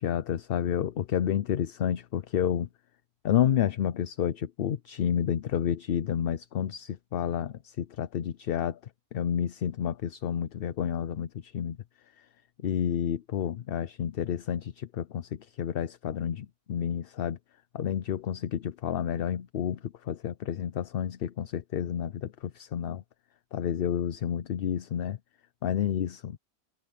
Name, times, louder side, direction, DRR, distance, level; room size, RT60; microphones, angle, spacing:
voice 1, 0.0-2.7 3.2-8.8 9.1-11.8 12.2-12.3 12.6-17.4 17.7-23.0 23.5-25.2 25.6-26.4, left 9 dB, 60° left, 0.8 m, -30 dB
omnidirectional pair, 1.2 m